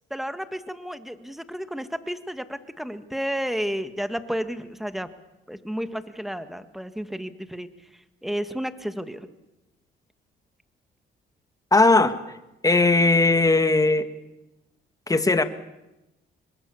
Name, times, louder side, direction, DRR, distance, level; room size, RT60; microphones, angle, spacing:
voice 1, 0.1-5.1 5.5-7.7 8.2-9.3, equal, ahead, 10 dB, 1.7 m, -32 dB
voice 2, 11.7-12.2 12.6-14.1 15.1-15.4, left 3 dB, 15° left, 9 dB, 1.8 m, -18 dB
27.5 x 22.0 x 7.1 m, 0.96 s
cardioid pair, 90°, 20 cm